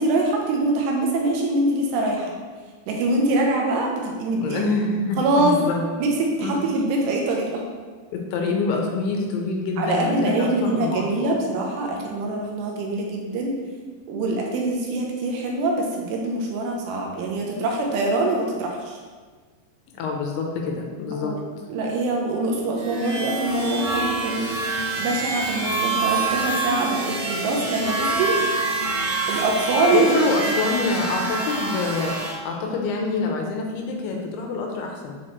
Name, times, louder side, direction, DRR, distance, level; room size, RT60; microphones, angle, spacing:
voice 1, 0.0-2.3 2.9-4.6 5.2-5.6 6.0-7.6 9.8-13.6 14.1-19.0 21.2-21.4 21.7-24.4 25.0-28.3 29.3-30.3, right 2 dB, 85° right, 0 dB, 2.9 m, -24 dB
voice 2, 4.4-5.8 6.4-6.6 8.1-11.3 19.9-21.3 29.9-35.2, left 4 dB, 85° left, 1 dB, 2.6 m, -26 dB
sound 1, 22.7-32.3, right 3 dB, 65° right, 2.0 m, -26 dB
7.5 x 4.1 x 3.1 m, 1.5 s
omnidirectional pair, 4.9 m